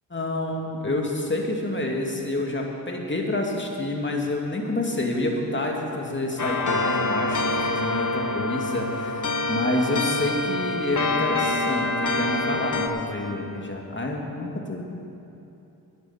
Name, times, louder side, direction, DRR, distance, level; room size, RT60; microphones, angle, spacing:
voice 1, 0.1-14.8, left 1 dB, 30° left, 0 dB, 2.5 m, -28 dB
sound 1, 6.4-12.9, left 2 dB, 50° left, 1.4 m, -26 dB
10.5 x 10.0 x 8.2 m, 2.9 s
cardioid pair, 50°, 40 cm